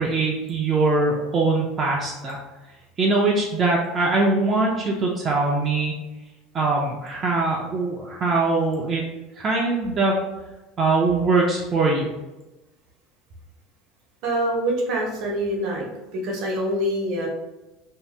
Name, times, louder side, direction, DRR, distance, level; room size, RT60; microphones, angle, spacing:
voice 1, 0.0-2.4 3.0-6.0 6.5-9.0 9.4-10.2 10.8-12.1, right 3 dB, 25° right, -2 dB, 0.4 m, -22 dB
voice 2, 14.2-15.9 16.1-17.3, right 1 dB, 50° right, -1 dB, 0.8 m, -25 dB
2.6 x 2.2 x 3.2 m, 1.0 s
cardioid pair, 165°, 0 cm